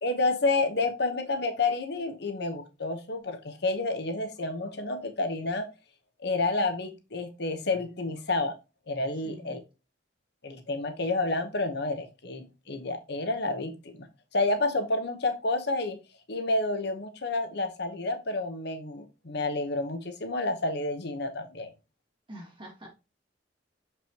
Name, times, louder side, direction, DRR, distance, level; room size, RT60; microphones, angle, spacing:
voice 1, 0.0-5.7 6.2-8.6 8.9-9.6 10.4-14.1 14.3-16.0 16.3-21.7, left 2 dB, 65° left, 1.1 m, -29 dB
voice 2, 9.1-9.6 22.3-22.9, equal, 25° right, 3.0 m, -45 dB
7.0 x 5.1 x 2.9 m
head